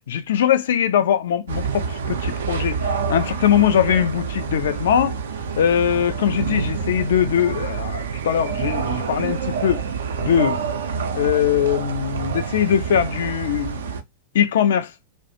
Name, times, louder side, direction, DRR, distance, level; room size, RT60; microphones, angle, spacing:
voice 1, 0.1-5.2 5.6-9.8 10.2-10.6 11.1-13.8 14.3-14.9, left 9 dB, 60° left, 0.3 m, -21 dB
sound 1, 1.5-14.0, right 6 dB, 65° right, 0.4 m, -27 dB
2.3 x 2.1 x 2.6 m
figure-of-eight pair, 90°, 0 cm